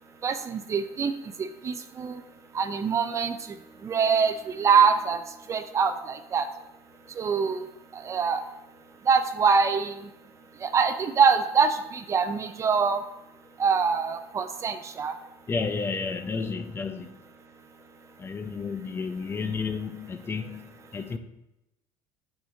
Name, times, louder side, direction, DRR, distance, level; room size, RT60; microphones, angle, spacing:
voice 1, 0.2-1.1 1.4-2.2 2.5-3.4 3.8-5.2 5.5-6.5 7.2-7.7 7.9-8.4 9.1-10.0 10.6-13.0 13.6-15.1, right 6 dB, 30° right, 9 dB, 0.4 m, -24 dB
voice 2, 15.5-17.1 18.2-20.7 20.9-21.2, left 4 dB, 25° left, 8 dB, 0.5 m, -31 dB
9.1 x 5.0 x 2.7 m, 0.90 s
cardioid pair, 125°, 10 cm